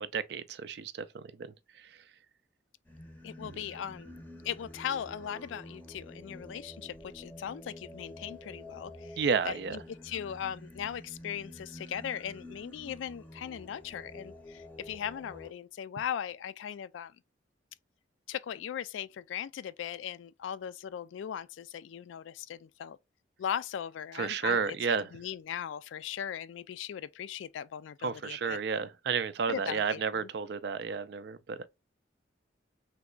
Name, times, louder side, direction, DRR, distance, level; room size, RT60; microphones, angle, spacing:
voice 1, 0.0-1.5 1.7-2.0 3.4-3.7 9.2-9.8 24.1-25.1 28.0-31.7, right 5 dB, 55° right, 0.3 m, -32 dB
Singing, 2.8-15.5, left 1 dB, 10° left, 0.6 m, -49 dB
voice 2, 3.2-4.1 4.4-9.2 9.5-17.1 18.3-23.0 23.4-28.6 29.5-30.3, left 9 dB, 80° left, 0.3 m, -39 dB
3.4 x 2.9 x 2.3 m
head